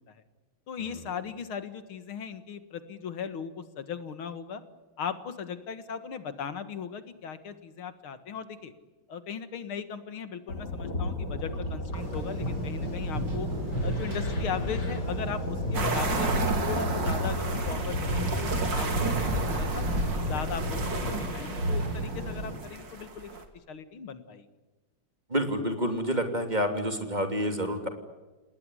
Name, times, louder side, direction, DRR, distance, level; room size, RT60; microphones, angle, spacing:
voice 1, 0.7-4.6 5.0-8.7 9.1-13.5 13.8-16.3 16.6-19.8 20.2-23.3 23.7-24.5, left 7 dB, 90° left, 11 dB, 2.6 m, -38 dB
sound 1, 10.5-21.1, left 1 dB, 55° left, 4.5 m, -33 dB
sound 2, 11.9-22.6, right 1 dB, 85° right, 7.4 m, -34 dB
sound 3, 15.7-23.4, right 4 dB, 60° right, 3.4 m, -33 dB
voice 2, 25.3-27.9, equal, 20° right, 6 dB, 3.0 m, -28 dB
29.5 x 19.5 x 9.9 m, 1.2 s
omnidirectional pair, 2.2 m